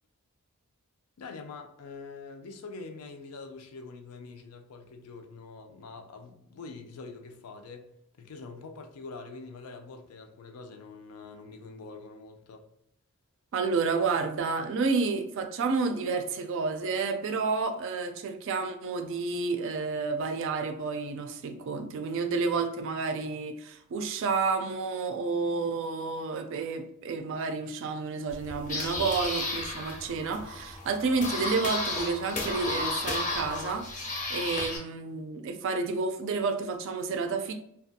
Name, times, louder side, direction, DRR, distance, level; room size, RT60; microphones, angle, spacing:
voice 1, 1.2-12.7, left 4 dB, 85° left, 0.4 m, -45 dB
voice 2, 13.5-37.5, right 4 dB, 60° right, 0.3 m, -30 dB
sound 1, 28.3-34.8, left 2 dB, 35° left, 0.5 m, -33 dB
2.5 x 2.3 x 2.6 m
head